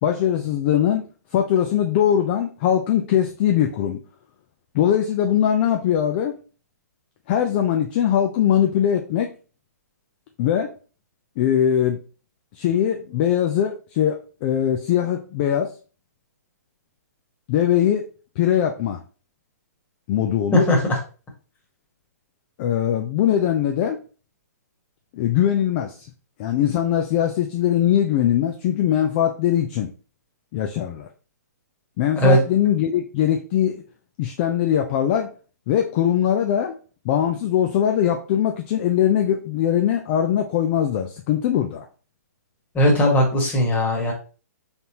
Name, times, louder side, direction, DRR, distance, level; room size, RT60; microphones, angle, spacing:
voice 1, 0.0-4.0 4.7-6.4 7.3-9.3 10.4-10.7 11.4-12.0 12.5-15.7 17.5-18.1 18.4-19.0 20.1-20.6 22.6-24.0 25.1-25.9 26.4-29.9 30.5-31.1 32.0-33.8 34.2-35.3 35.7-36.8 37.0-41.8, left 10 dB, 35° left, 4 dB, 0.5 m, -21 dB
voice 2, 20.5-21.0 32.2-32.4 42.7-44.1, equal, 15° left, 0 dB, 1.5 m, -18 dB
3.9 x 3.5 x 2.9 m, 0.36 s
hypercardioid pair, 130°, 9 cm